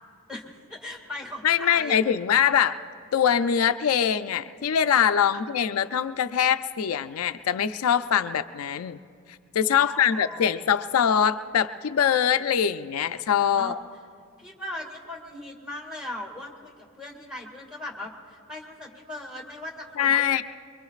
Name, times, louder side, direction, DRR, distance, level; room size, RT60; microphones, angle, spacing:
voice 1, 0.3-2.0 9.8-10.5 13.6-13.8 14.4-20.4, left 1 dB, 5° right, -1 dB, 2.0 m, -39 dB
voice 2, 1.4-2.8 3.1-9.0 9.5-13.8 20.0-20.4, left 8 dB, 80° left, 10 dB, 0.4 m, -23 dB
25.0 x 23.0 x 2.4 m, 2.2 s
head